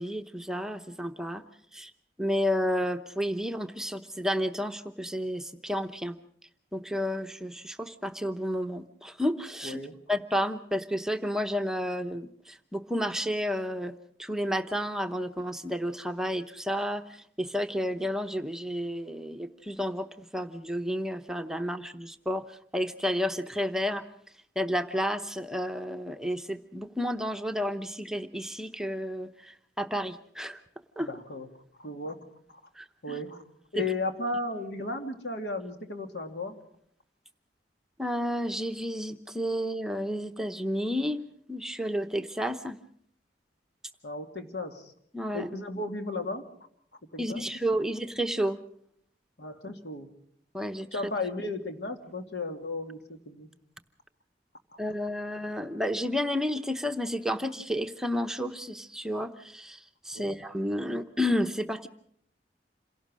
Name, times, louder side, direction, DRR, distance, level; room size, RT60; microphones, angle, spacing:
voice 1, 0.0-1.4 1.7-1.9 2.2-6.2 6.7-9.8 10.1-13.9 14.2-24.0 24.6-30.6 31.0-31.1 32.8-33.2 33.8-33.9 38.0-41.2 41.5-42.8 45.1-45.5 47.2-48.6 50.5-51.1 54.8-61.9, equal, 5° right, 7 dB, 0.8 m, -31 dB
voice 2, 9.6-10.0 31.1-31.5 31.8-32.2 33.0-33.4 33.7-36.5 44.0-44.9 45.3-46.4 47.1-47.4 49.4-50.1 50.9-53.5 60.1-60.4, left 2 dB, 80° left, 5 dB, 2.4 m, -35 dB
27.5 x 17.5 x 6.3 m, 0.65 s
head